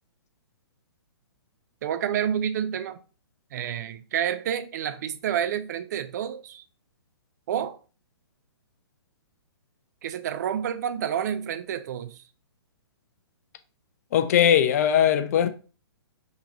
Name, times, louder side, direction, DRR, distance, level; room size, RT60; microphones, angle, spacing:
voice 1, 1.8-3.0 3.5-6.6 7.5-7.8 10.0-12.2, right 9 dB, 40° right, 0.4 m, -29 dB
voice 2, 14.1-15.5, left 9 dB, 35° left, 0.4 m, -20 dB
3.6 x 3.4 x 2.6 m
figure-of-eight pair, 120°, 14 cm